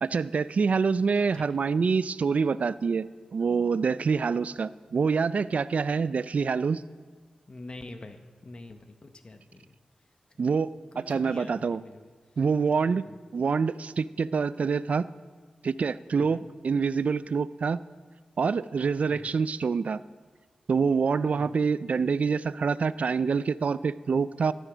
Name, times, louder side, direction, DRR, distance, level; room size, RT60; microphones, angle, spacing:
voice 1, 0.0-6.8 10.4-10.7 11.1-11.8 12.4-13.0 13.3-15.1 15.6-17.8 18.4-20.0 20.7-24.5, right 5 dB, 60° right, 16 dB, 0.4 m, -26 dB
voice 2, 7.5-9.8 10.3-10.4 10.9-12.1 13.0-13.2 16.2-16.5 19.1-19.4 21.3-21.6, left 2 dB, 40° left, 7 dB, 0.9 m, -45 dB
13.5 x 12.0 x 5.0 m, 1.5 s
wide cardioid pair, 85°, 3 cm